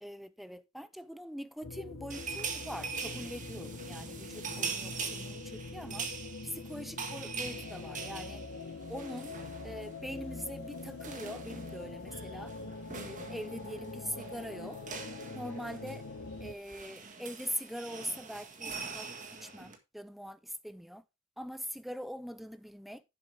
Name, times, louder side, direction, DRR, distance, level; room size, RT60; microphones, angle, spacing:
voice 1, 0.0-6.1 6.4-8.4 8.9-9.4 9.6-12.5 12.9-14.8 15.3-16.0 16.4-19.1 19.4-21.0 21.4-23.0, equal, ahead, 0.6 m, -42 dB
sound 1, 1.6-16.5, left 3 dB, 65° left, 1.0 m, -44 dB
sound 2, 2.1-10.0 10.2-10.4 10.7-19.8, right 5 dB, 35° right, 1.8 m, -43 dB
11.0 x 7.4 x 3.5 m
head